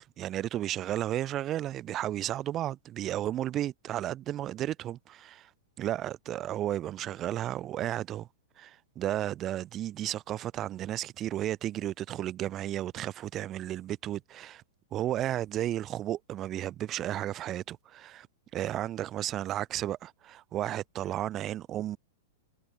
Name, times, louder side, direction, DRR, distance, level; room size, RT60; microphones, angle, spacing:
voice 1, 0.0-5.5 5.8-8.3 8.6-14.6 14.9-18.3 18.5-22.0, right 12 dB, 25° right, 0.3 m, -33 dB
figure-of-eight pair, 100°, 0 cm